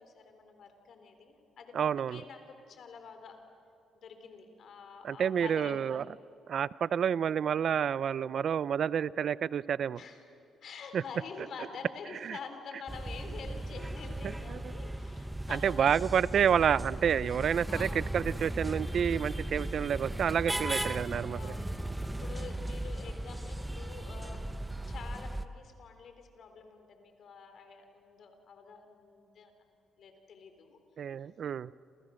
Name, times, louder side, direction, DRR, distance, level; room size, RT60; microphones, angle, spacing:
voice 1, 0.0-3.4 3.9-5.8 10.0-10.2 10.6-15.9 16.3-16.4 17.7-18.0 20.5-20.9 21.3-24.5 24.9-29.5 30.0-30.8, left 5 dB, 60° left, 6 dB, 3.7 m, -47 dB
voice 2, 1.7-2.2 5.0-6.0 6.5-10.0 10.9-11.0 12.2-12.4 14.5-14.6 15.5-21.5 31.0-31.7, right 8 dB, 60° right, 19 dB, 0.6 m, -29 dB
sound 1, 12.9-25.5, right 1 dB, 10° right, 1.2 m, -37 dB
29.5 x 27.5 x 6.5 m, 2.7 s
cardioid pair, 90°, 0 cm